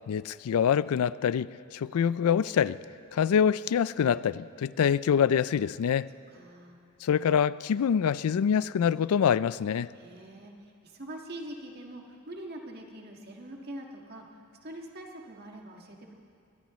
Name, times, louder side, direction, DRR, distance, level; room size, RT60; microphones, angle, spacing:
voice 1, 0.1-2.8 3.1-6.1 7.0-9.9, left 8 dB, 90° left, 18 dB, 0.4 m, -25 dB
voice 2, 6.3-6.8 9.9-14.2 14.6-16.1, right 1 dB, 50° right, 1 dB, 1.7 m, -44 dB
23.0 x 18.5 x 3.1 m, 2.4 s
head